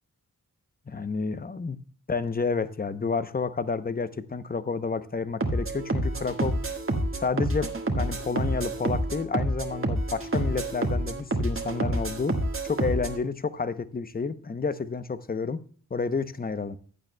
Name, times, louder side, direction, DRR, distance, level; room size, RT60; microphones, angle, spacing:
voice 1, 0.9-1.8 2.1-6.6 7.2-12.4 12.6-15.6 15.9-16.8, left 4 dB, 25° left, 0.7 m, -30 dB
sound 1, 5.4-13.2, right 1 dB, 35° right, 1.6 m, -28 dB
15.0 x 9.5 x 2.2 m
wide cardioid pair, 75°, 36 cm